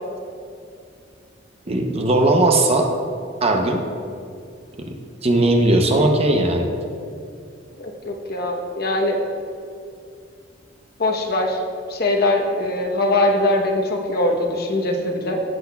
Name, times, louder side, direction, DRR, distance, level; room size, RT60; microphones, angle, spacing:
voice 1, 1.7-2.9 3.4-3.8 5.2-6.7, right 2 dB, 35° right, 3 dB, 0.7 m, -18 dB
voice 2, 7.8-9.2 11.0-11.6 11.9-15.4, left 1 dB, 55° left, 2 dB, 0.9 m, -21 dB
14.0 x 8.0 x 2.3 m, 2.4 s
head